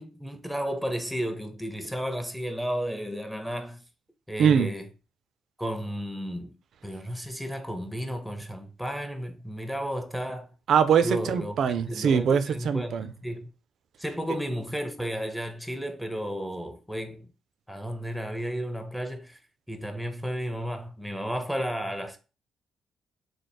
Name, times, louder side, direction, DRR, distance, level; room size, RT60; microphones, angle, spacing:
voice 1, 0.0-3.8 4.3-4.9 5.6-6.6 6.8-10.5 11.0-11.6 11.9-13.5 14.0-17.3 17.7-19.4 19.7-22.2, equal, ahead, 0.5 m, -33 dB
voice 2, 10.7-13.1, right 7 dB, 65° right, 0.4 m, -22 dB
3.2 x 2.0 x 4.1 m
cardioid pair, 90°, 0 cm